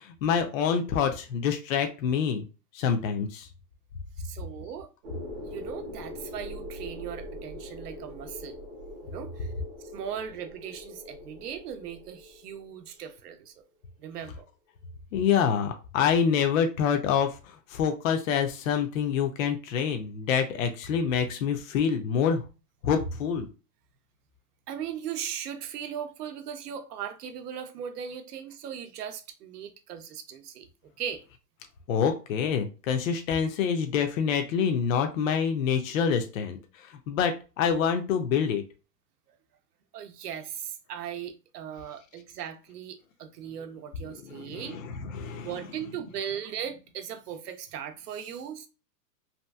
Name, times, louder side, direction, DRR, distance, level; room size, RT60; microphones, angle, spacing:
voice 1, 0.0-2.5 2.7-3.5 15.1-22.4 22.8-23.5 31.9-38.6 44.3-45.6, left 7 dB, 55° left, 0.5 m, -26 dB
voice 2, 4.2-4.9 5.5-8.6 9.0-9.5 9.9-13.6 14.0-14.5 24.7-30.7 31.0-31.2 39.9-44.8 45.4-48.7, right 8 dB, 70° right, 0.7 m, -38 dB
sound 1, 5.0-12.9, left 1 dB, 25° right, 0.5 m, -42 dB
2.8 x 2.5 x 2.2 m
hypercardioid pair, 145°, 49 cm